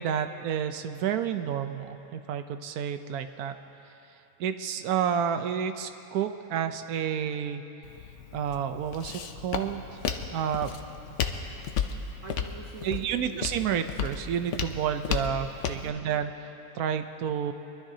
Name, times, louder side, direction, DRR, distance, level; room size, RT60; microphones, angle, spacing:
voice 1, 0.0-3.6 4.4-7.6 8.3-9.8 10.3-10.7 12.8-16.3 16.7-17.5, right 8 dB, 90° right, 9 dB, 1.2 m, -30 dB
Walk footsteps, 7.8-15.9, left 7 dB, 60° left, 0.9 m, -34 dB
voice 2, 11.2-13.4 15.7-16.0, right 7 dB, 65° right, 0 dB, 1.1 m, -45 dB
23.5 x 12.5 x 2.8 m, 2.9 s
omnidirectional pair, 1.5 m